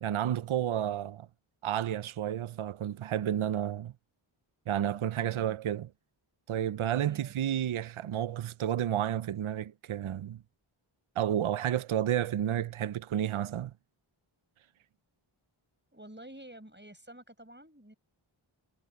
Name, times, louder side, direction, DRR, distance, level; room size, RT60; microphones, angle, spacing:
voice 1, 0.0-1.3 1.6-3.9 4.7-5.9 6.5-10.4 11.2-13.7, right 10 dB, 75° right, 0.5 m, -31 dB
voice 2, 7.0-7.3 15.9-18.0, right 1 dB, 20° right, 6.4 m, -50 dB
wide cardioid pair, 40°, 49 cm